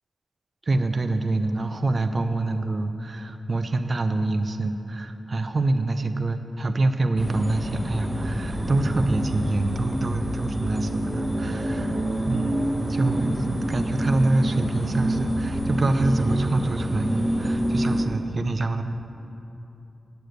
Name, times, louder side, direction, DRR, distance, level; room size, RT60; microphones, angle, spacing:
voice 1, 0.6-12.0 12.3-18.8, right 2 dB, 50° right, 8 dB, 0.6 m, -26 dB
sound 1, 7.2-18.0, right 1 dB, 20° right, 1.1 m, -27 dB
8.3 x 6.7 x 7.9 m, 2.9 s
cardioid pair, 65°, 0 cm